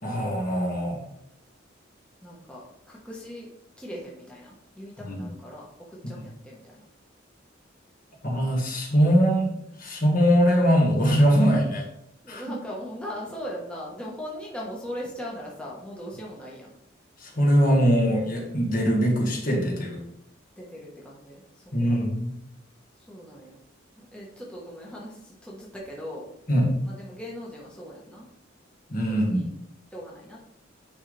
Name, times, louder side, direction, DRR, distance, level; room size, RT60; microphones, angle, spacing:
voice 1, 0.0-1.0 5.0-5.1 6.0-6.1 8.2-9.5 9.8-11.8 12.3-12.4 17.2-20.0 21.7-22.3 26.5-26.7 28.9-29.4, equal, 45° left, -1 dB, 1.7 m, -22 dB
voice 2, 2.2-6.8 12.2-16.7 20.6-21.4 21.9-22.0 23.0-23.6 24.0-26.3 26.8-28.3 29.1-29.5 29.9-30.4, equal, 5° left, -5 dB, 1.2 m, -39 dB
9.8 x 4.0 x 3.3 m, 0.75 s
head